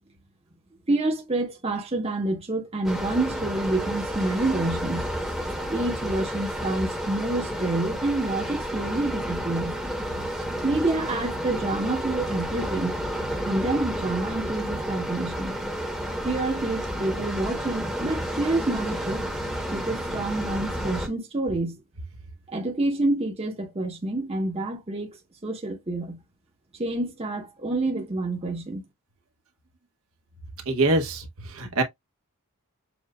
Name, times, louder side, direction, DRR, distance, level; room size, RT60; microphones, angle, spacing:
voice 1, 0.9-5.1 5.7-9.8 10.6-12.9 13.4-15.5 16.2-19.2 19.7-21.8 22.5-26.2 26.8-28.8, right 2 dB, 25° right, 1.0 m, -28 dB
sound 1, 2.8-21.1, equal, ahead, 1.0 m, -31 dB
voice 2, 30.7-31.2 31.6-31.8, right 2 dB, 70° right, 1.1 m, -23 dB
7.1 x 2.5 x 2.2 m
head